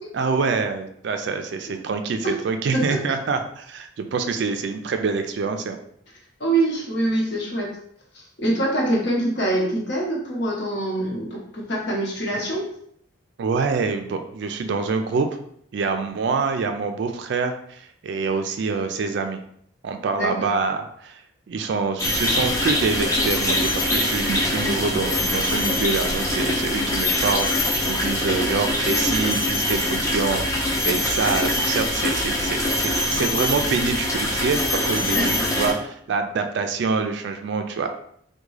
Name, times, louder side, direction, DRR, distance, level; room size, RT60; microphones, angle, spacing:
voice 1, 0.1-5.8 13.4-15.3 15.7-19.4 19.8-21.2 21.5-37.9, right 4 dB, 55° right, 6 dB, 0.3 m, -26 dB
voice 2, 6.4-7.7 8.1-12.7 20.2-20.5 34.9-35.3, right 1 dB, 55° left, -3 dB, 0.9 m, -24 dB
sound 1, 22.0-35.7, left 1 dB, 15° left, 0.5 m, -23 dB
3.5 x 2.2 x 3.1 m, 0.67 s
head